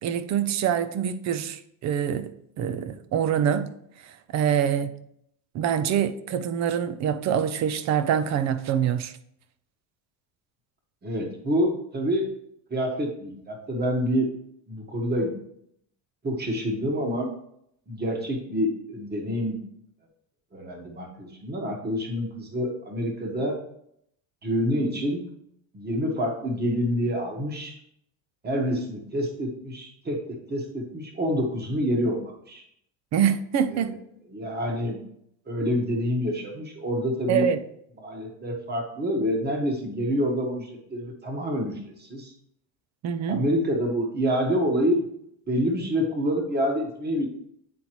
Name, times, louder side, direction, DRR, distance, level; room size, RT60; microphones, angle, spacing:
voice 1, 0.0-3.7 4.3-4.9 5.5-9.1 33.1-34.0 37.3-37.6 43.0-43.4, right 8 dB, 35° right, 0.5 m, -25 dB
voice 2, 11.0-12.3 12.7-14.3 14.7-15.4 16.2-17.3 17.9-19.6 20.5-23.6 24.4-25.2 25.7-27.8 28.4-30.2 30.5-32.6 33.7-33.8 34.3-35.0 35.5-37.5 38.0-42.3 43.3-45.0 45.5-47.3, equal, 20° right, 1.4 m, -27 dB
9.4 x 3.9 x 3.0 m
supercardioid pair, 115°, 50 cm